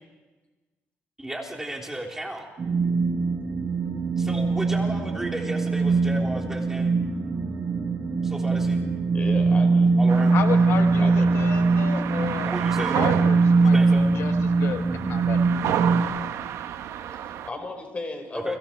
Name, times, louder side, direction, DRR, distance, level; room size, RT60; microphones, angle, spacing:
voice 1, 1.2-2.5 4.2-7.0 8.2-8.9 10.0-10.3 12.4-13.0 13.6-14.0 18.4-18.6, right 1 dB, 10° right, 0 dB, 3.6 m, -34 dB
sound 1, 2.6-16.0, right 3 dB, 40° right, 6.3 m, -22 dB
voice 2, 9.1-9.9 11.0-11.6 17.0-18.6, left 3 dB, 25° left, 5 dB, 4.9 m, -35 dB
sound 2, 10.1-17.5, right 10 dB, 80° right, 1.1 m, -31 dB
voice 3, 10.3-15.4, left 7 dB, 70° left, 6 dB, 1.5 m, -33 dB
30.0 x 25.0 x 4.6 m, 1.2 s
cardioid pair, 120°, 5 cm